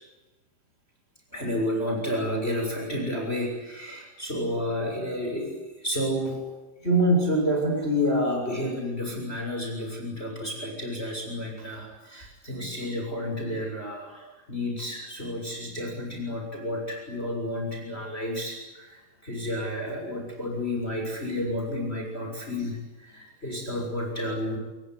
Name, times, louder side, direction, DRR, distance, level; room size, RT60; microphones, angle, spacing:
voice 1, 1.3-6.4 6.8-24.6, equal, 10° left, 2 dB, 6.6 m, -30 dB
27.0 x 22.5 x 9.8 m, 1.1 s
omnidirectional pair, 5.3 m